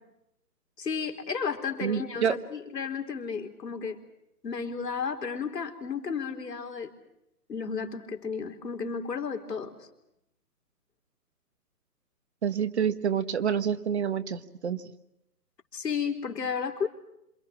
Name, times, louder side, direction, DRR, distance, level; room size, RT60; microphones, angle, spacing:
voice 1, 0.8-4.0 4.4-6.9 7.5-9.7 15.7-16.9, left 6 dB, 85° left, 5 dB, 4.2 m, -33 dB
voice 2, 1.8-2.3 12.4-14.8, right 8 dB, 45° right, 12 dB, 1.4 m, -28 dB
27.5 x 27.0 x 6.1 m, 0.82 s
hypercardioid pair, 165°, 48 cm